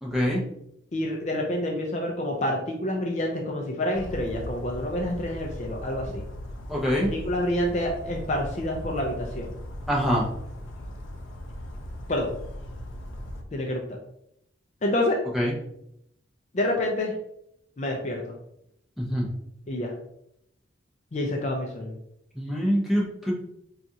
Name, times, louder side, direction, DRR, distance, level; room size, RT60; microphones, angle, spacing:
voice 1, 0.0-0.4 6.7-7.1 9.9-10.3 15.3-15.5 19.0-19.3 22.3-23.3, equal, ahead, -5 dB, 0.7 m, -24 dB
voice 2, 0.9-6.2 7.1-9.6 12.1-12.3 13.5-14.0 14.8-15.2 16.5-17.1 17.8-18.3 19.7-19.9 21.1-21.9, left 1 dB, 35° left, 0 dB, 0.4 m, -28 dB
Bird vocalization bird call bird song, 3.9-13.4, equal, 85° left, 0.5 m, -38 dB
4.0 x 2.4 x 2.7 m, 0.77 s
head